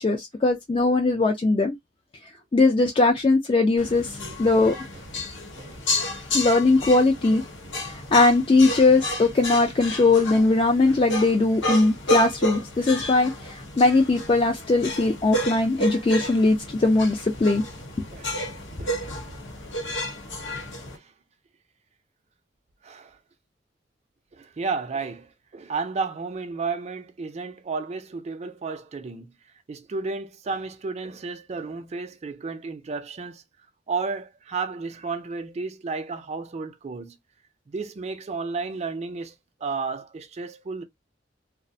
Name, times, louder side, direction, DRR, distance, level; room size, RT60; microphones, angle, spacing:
voice 1, 0.0-1.7 2.2-4.7 6.3-7.4 7.8-17.6, left 3 dB, 30° left, 0.3 m, -20 dB
sound 1, 3.8-21.0, left 1 dB, 85° left, 0.9 m, -31 dB
voice 2, 18.8-19.1 21.0-21.1 22.8-23.2 24.3-29.3 29.7-33.4 33.9-37.2 37.7-39.3 39.6-40.8, right 4 dB, 35° right, 0.4 m, -32 dB
2.4 x 2.1 x 2.5 m
head